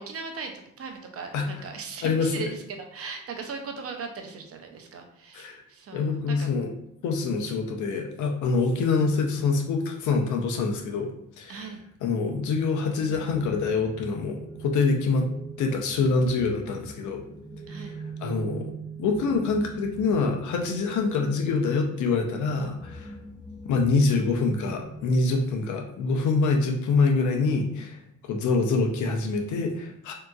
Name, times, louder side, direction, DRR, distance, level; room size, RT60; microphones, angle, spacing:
voice 1, 0.0-6.5 11.5-11.9 17.7-18.0, right 5 dB, 50° right, 4 dB, 0.6 m, -38 dB
voice 2, 2.0-2.5 5.3-5.6 5.9-6.7 7.0-11.1 11.4-11.7 12.0-15.3 15.6-17.2 17.8-17.9 18.2-18.7 19.0-23.1 23.6-28.0 28.2-30.1, left 4 dB, 75° left, 3 dB, 0.7 m, -25 dB
sound 1, 12.9-25.6, right 3 dB, 10° right, 0.6 m, -42 dB
3.6 x 2.8 x 2.3 m, 0.72 s
cardioid pair, 90°, 30 cm